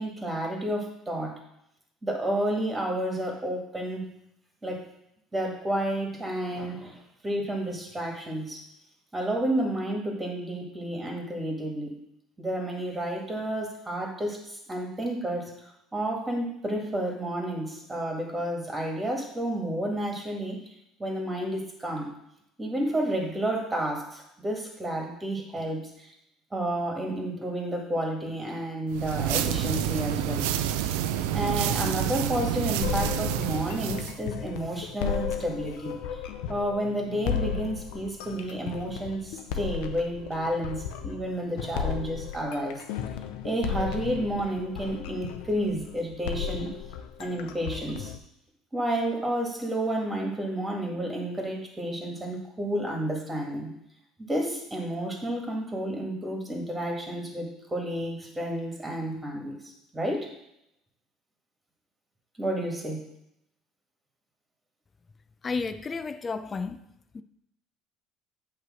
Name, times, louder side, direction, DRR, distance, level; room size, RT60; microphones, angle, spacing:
voice 1, 0.0-1.4 2.0-4.1 4.6-4.8 5.3-8.7 9.1-12.0 12.4-15.5 15.9-20.6 21.0-22.2 22.6-26.1 26.5-30.5 31.3-36.0 36.5-42.8 43.4-46.7 47.2-48.1 48.7-53.7 54.3-60.3 62.4-63.1, right 1 dB, 15° right, 1.9 m, -31 dB
sound 1, 28.9-34.2, right 10 dB, 90° right, 0.4 m, -28 dB
sound 2, 32.8-48.2, left 8 dB, 85° left, 0.5 m, -35 dB
voice 2, 65.4-66.8 67.1-67.2, left 4 dB, 30° left, 0.5 m, -32 dB
8.1 x 3.2 x 6.3 m
supercardioid pair, 100°, 0 cm